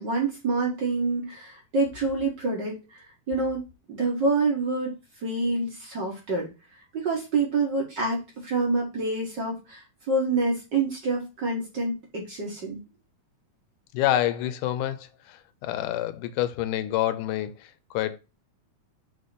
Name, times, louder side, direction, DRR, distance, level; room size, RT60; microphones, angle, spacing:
voice 1, 0.0-3.6 3.9-4.9 5.2-6.5 6.9-12.8, right 3 dB, 45° right, 1.6 m, -27 dB
voice 2, 13.9-18.2, left 13 dB, 85° left, 2.2 m, -28 dB
6.9 x 3.7 x 4.0 m
omnidirectional pair, 3.6 m